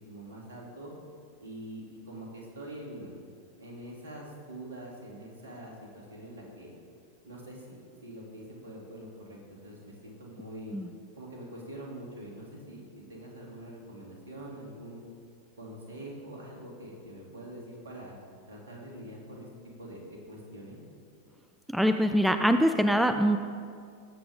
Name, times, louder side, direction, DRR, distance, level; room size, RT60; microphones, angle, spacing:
voice 1, 0.1-0.9 1.4-3.2 3.6-6.7 7.2-10.7 11.2-15.0 15.6-18.2 18.5-19.5 19.8-20.8, right 1 dB, 65° right, -2 dB, 2.7 m, -44 dB
voice 2, 21.7-23.4, equal, ahead, 7 dB, 0.4 m, -23 dB
19.0 x 7.8 x 3.6 m, 2.2 s
figure-of-eight pair, 90°, 0 cm